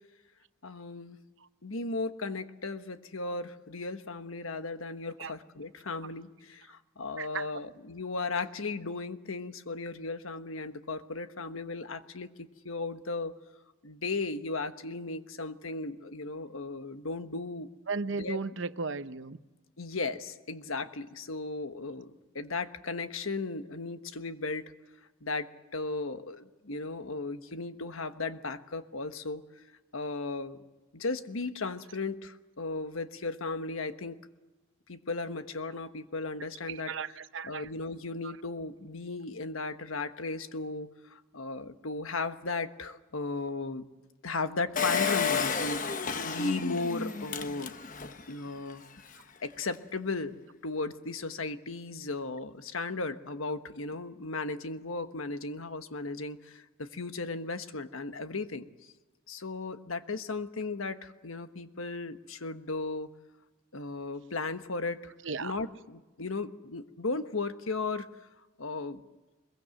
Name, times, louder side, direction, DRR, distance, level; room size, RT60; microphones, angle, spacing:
voice 1, 0.6-1.2 1.6-13.3 13.8-17.7 18.2-18.4 19.8-24.7 25.2-29.4 29.9-30.6 30.9-34.2 34.9-36.9 37.4-43.8 44.2-47.8 48.3-48.8 49.4-58.9 59.3-63.1 63.7-65.1 65.4-68.1 68.6-69.0, left 3 dB, 90° left, 1.3 m, -36 dB
voice 2, 17.9-19.4 36.7-37.7 38.2-38.3 65.2-65.5, right 4 dB, 65° right, 0.8 m, -35 dB
Engine, 44.8-48.2 48.7-48.8 49.0-49.1, left 5 dB, 40° left, 1.1 m, -31 dB
22.5 x 22.0 x 7.8 m
head